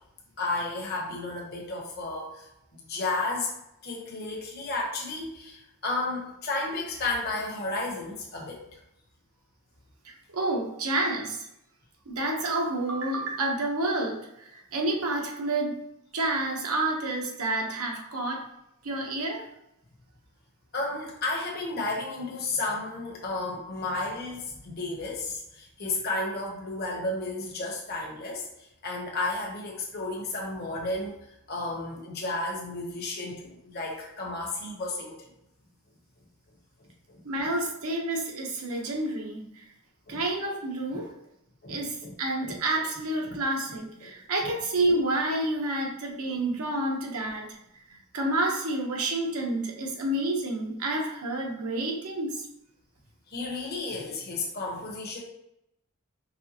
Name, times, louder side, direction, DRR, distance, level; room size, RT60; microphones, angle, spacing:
voice 1, 0.4-2.5 2.7-3.5 3.8-8.8 20.7-35.3 37.1-37.2 40.1-40.2 41.6-42.1 42.4-42.6 43.3-43.4 44.0-44.1 53.3-55.2, left 2 dB, 45° left, -2 dB, 1.1 m, -33 dB
voice 2, 10.0-11.5 12.1-15.8 16.1-18.5 18.8-19.4 37.2-39.6 40.1-41.1 41.7-47.6 47.9-52.5, right 2 dB, 80° right, 0 dB, 1.0 m, -29 dB
5.3 x 3.3 x 2.9 m, 0.83 s
head